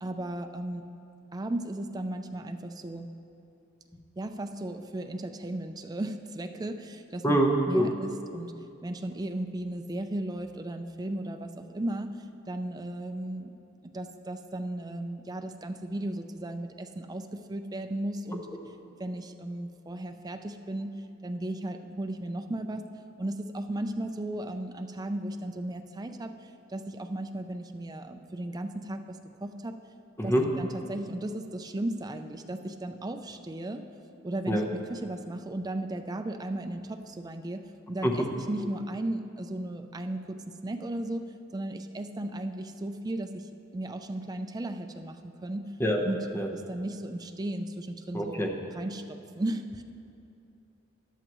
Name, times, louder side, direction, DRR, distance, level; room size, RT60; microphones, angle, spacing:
voice 1, 0.0-0.9 1.3-3.1 4.2-7.4 7.7-8.5 8.8-12.2 12.5-13.5 13.9-18.5 19.0-20.9 21.2-22.8 23.2-29.0 29.4-29.8 30.2-33.9 34.2-40.4 40.6-45.7 46.0-46.2 46.5-48.5 48.8-49.8, right 1 dB, 20° right, 6 dB, 0.4 m, -35 dB
voice 2, 7.2-7.9 30.2-30.5 34.5-34.6 38.0-38.3 38.6-38.7 45.8-46.0 46.3-46.5 48.1-48.5, right 1 dB, 10° left, 1 dB, 0.9 m, -25 dB
14.0 x 10.5 x 3.1 m, 2.7 s
head